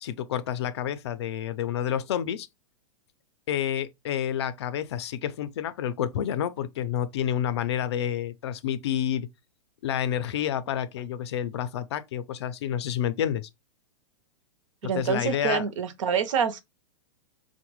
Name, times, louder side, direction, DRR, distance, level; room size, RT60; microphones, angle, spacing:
voice 1, 0.0-2.5 3.5-9.3 9.8-13.5 14.8-15.6, left 10 dB, 55° left, 0.4 m, -29 dB
voice 2, 14.8-16.6, right 7 dB, 75° right, 0.6 m, -26 dB
3.8 x 2.1 x 2.9 m
supercardioid pair, 175°, 16 cm